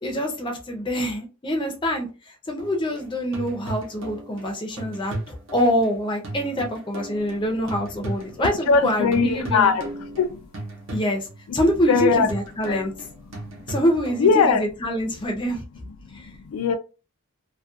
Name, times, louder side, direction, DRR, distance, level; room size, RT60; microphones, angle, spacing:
voice 1, 0.0-9.7 10.9-11.3 11.5-12.9 13.7-15.6 16.1-16.3, equal, 20° left, 0.5 m, -25 dB
sound 1, 2.6-8.9 9.1-14.5, right 1 dB, 60° right, 0.7 m, -36 dB
voice 2, 8.4-10.5 11.9-12.3 12.7-12.9 14.2-14.6 16.0-16.8, left 5 dB, 80° left, 0.3 m, -21 dB
2.4 x 2.2 x 2.5 m
head